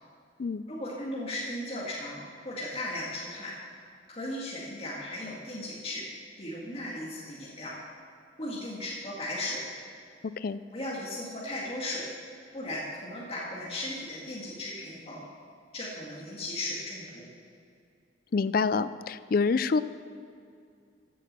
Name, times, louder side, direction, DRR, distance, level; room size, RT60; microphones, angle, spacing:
voice 1, 0.7-3.5 4.1-6.0 6.4-7.7 8.4-9.6 10.7-12.1 12.5-15.2 15.7-17.3, left 1 dB, 35° left, -5 dB, 2.0 m, -36 dB
voice 2, 18.3-19.8, left 4 dB, 50° left, 15 dB, 0.4 m, -26 dB
15.5 x 8.5 x 6.7 m, 2.3 s
head